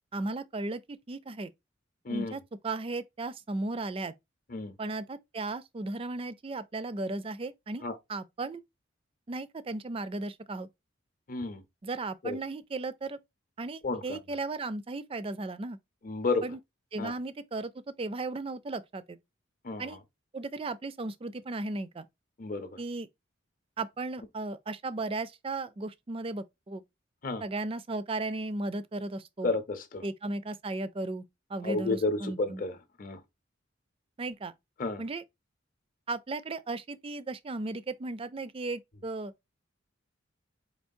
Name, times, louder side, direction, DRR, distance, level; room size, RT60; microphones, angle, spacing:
voice 1, 0.1-1.5 2.1-4.1 4.8-7.8 8.1-8.6 9.3-10.7 11.8-13.2 13.6-15.8 16.4-16.6 16.9-17.7 18.0-19.2 19.8-20.0 20.3-22.1 22.8-23.1 23.8-26.8 27.4-29.5 30.0-32.6 34.2-34.5 35.0-35.2 36.1-39.3, right 2 dB, 30° right, 0.4 m, -35 dB
voice 2, 11.3-11.6 12.2-12.4 13.8-14.2 16.0-16.5 17.0-17.1 19.6-19.9 22.4-22.8 27.2-27.4 29.4-30.0 31.6-33.2 34.8-35.0, left 3 dB, 45° left, 0.7 m, -31 dB
4.5 x 3.0 x 2.6 m
head